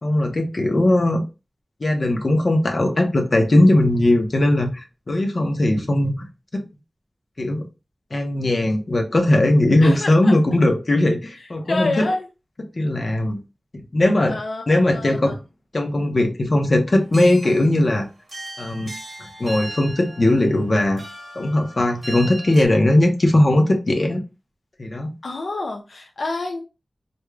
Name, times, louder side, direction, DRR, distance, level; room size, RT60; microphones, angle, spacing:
voice 1, 0.0-1.2 1.8-6.6 7.4-7.6 8.1-12.1 12.7-13.4 13.9-14.4 14.7-15.4 15.7-18.1 18.6-18.9 19.2-21.0 21.3-24.2 24.8-25.1, left 1 dB, 50° left, 0.9 m, -19 dB
voice 2, 9.8-10.4 11.4-12.3 14.3-15.4 25.2-26.6, left 2 dB, 80° left, 0.5 m, -28 dB
sound 1, 17.0-22.7, right 1 dB, 50° right, 1.1 m, -37 dB
4.6 x 2.6 x 2.3 m
wide cardioid pair, 80°, 0 cm